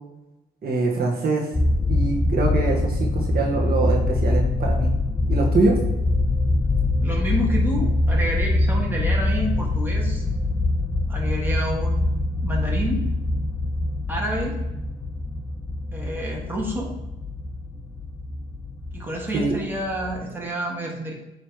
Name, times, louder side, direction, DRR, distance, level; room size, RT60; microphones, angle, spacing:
voice 1, 0.6-1.5 1.9-4.9 5.3-5.8 19.3-19.5, right 3 dB, 50° right, -1 dB, 1.3 m, -24 dB
sound 1, 1.5-20.2, left 2 dB, 15° left, 0.5 m, -24 dB
voice 2, 7.0-10.2 11.1-13.1 14.1-14.6 15.9-16.9 18.9-21.1, equal, 10° right, -2 dB, 1.8 m, -29 dB
8.6 x 3.1 x 4.7 m, 0.96 s
cardioid pair, 90°, 20 cm